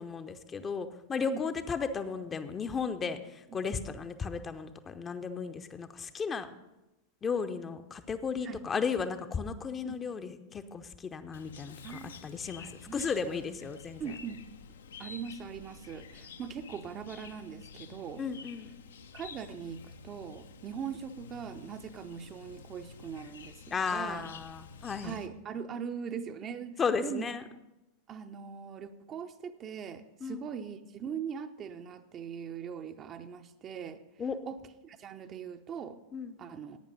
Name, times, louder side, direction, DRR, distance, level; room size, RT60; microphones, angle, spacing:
voice 1, 0.0-6.5 7.2-14.0 18.2-18.7 23.7-25.2 26.8-27.4 30.2-30.5 34.2-34.4 36.1-36.4, left 5 dB, 20° left, 9 dB, 0.6 m, -35 dB
Chirp tweet, 11.3-25.3, left 5 dB, 65° left, 0.6 m, -50 dB
voice 2, 11.8-12.1 12.6-13.4 14.0-14.4 15.0-18.2 19.1-23.6 23.9-24.2 25.0-27.3 28.1-34.0 34.5-34.6 34.8-36.0 36.4-36.8, right 7 dB, 30° right, 8 dB, 0.6 m, -41 dB
11.5 x 8.7 x 5.4 m, 0.97 s
figure-of-eight pair, 90°, 0 cm